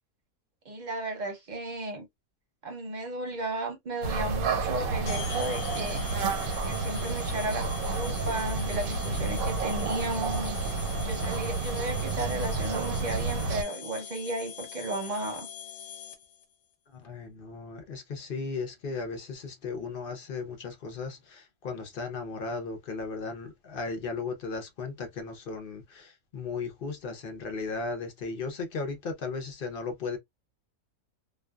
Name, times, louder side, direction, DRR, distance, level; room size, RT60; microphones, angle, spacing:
voice 1, 0.6-2.1 2.6-6.1 6.6-10.6 11.0-15.5, right 2 dB, 40° right, 0.8 m, -34 dB
sound 1, 4.0-13.6, right 4 dB, 80° right, 1.2 m, -30 dB
sound 2, 5.0-16.4, left 9 dB, 85° left, 1.0 m, -42 dB
voice 2, 16.9-30.2, left 4 dB, 50° left, 0.7 m, -36 dB
2.5 x 2.3 x 2.2 m
omnidirectional pair, 1.5 m